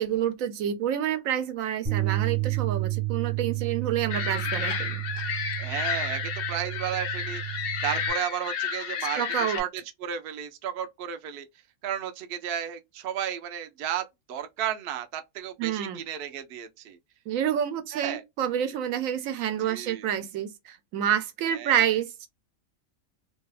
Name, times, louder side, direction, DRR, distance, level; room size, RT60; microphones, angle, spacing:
voice 1, 0.0-5.5 9.1-9.6 15.6-16.0 17.3-22.3, right 9 dB, 80° right, 1.0 m, -28 dB
Bass guitar, 1.9-8.1, right 17 dB, 45° right, 1.0 m, -31 dB
sound 1, 4.1-9.6, left 7 dB, 65° left, 0.6 m, -31 dB
voice 2, 4.2-4.5 5.6-7.4 7.8-11.5 11.8-17.0 17.9-18.2 19.6-20.1 21.5-21.9, right 10 dB, 60° right, 0.6 m, -33 dB
2.7 x 2.3 x 2.3 m
omnidirectional pair, 1.4 m